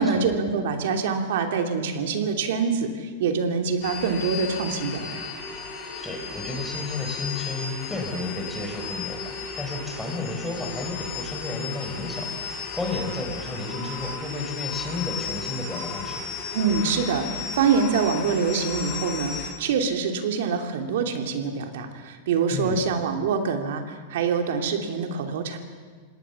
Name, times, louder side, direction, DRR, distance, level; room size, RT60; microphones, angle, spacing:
voice 1, 0.0-5.3 16.5-25.6, right 5 dB, 70° right, 4 dB, 2.9 m, -25 dB
sound 1, 3.8-19.5, left 5 dB, 45° left, 7.8 m, -34 dB
voice 2, 5.9-16.3 22.5-22.8, left 2 dB, 5° left, 2 dB, 4.9 m, -32 dB
26.0 x 18.5 x 7.3 m, 1.5 s
hypercardioid pair, 130°, 0 cm